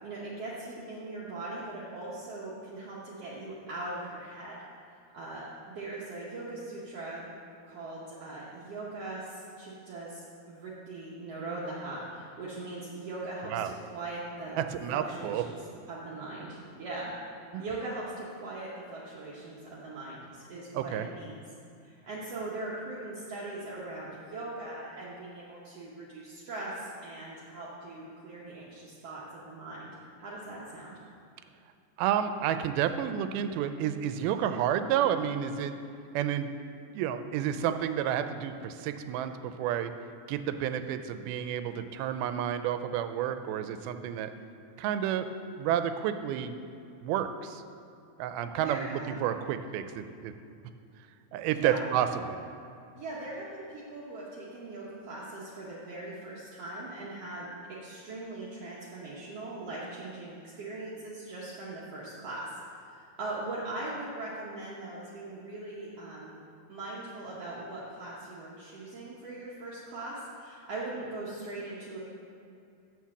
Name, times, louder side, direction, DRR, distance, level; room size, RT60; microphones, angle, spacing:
voice 1, 0.0-4.6 4.9-7.2 7.6-15.6 15.9-17.1 17.6-21.4 21.8-29.9 30.2-31.0 48.6-49.1 51.5-51.8 53.0-66.3 66.7-72.0, right 2 dB, 70° right, -7 dB, 1.5 m, -40 dB
voice 2, 14.6-15.4 17.5-17.6 20.7-21.1 32.0-35.8 36.1-36.5 36.9-39.9 40.3-44.3 44.8-45.3 45.6-46.5 47.0-47.6 48.2-50.3 51.3-52.4, right 10 dB, 90° right, 9 dB, 2.4 m, -30 dB
7.3 x 6.2 x 7.1 m, 2.6 s
omnidirectional pair, 4.3 m